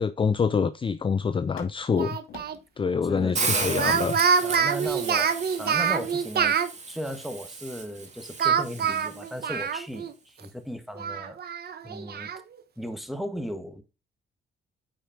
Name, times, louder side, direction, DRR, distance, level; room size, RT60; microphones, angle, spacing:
voice 1, 0.0-2.2 2.8-4.2, left 5 dB, 25° left, 0.5 m, -26 dB
sound 1, 0.9-1.1 1.5-1.9 2.3-2.6 3.1-3.3 3.9-4.1 4.8-5.1 5.7-5.9, left 7 dB, 85° left, 2.4 m, -46 dB
Speech, 2.0-2.6 3.7-6.7 8.4-10.1 10.4-10.5 11.0-12.4, right 7 dB, 55° right, 1.1 m, -26 dB
voice 2, 3.0-3.8 4.4-6.6 6.9-11.4 11.8-12.3 12.8-13.8, equal, ahead, 1.5 m, -36 dB
Hiss, 3.4-9.4, right 4 dB, 35° right, 2.5 m, -34 dB
9.1 x 5.0 x 3.8 m
cardioid pair, 90°, 20 cm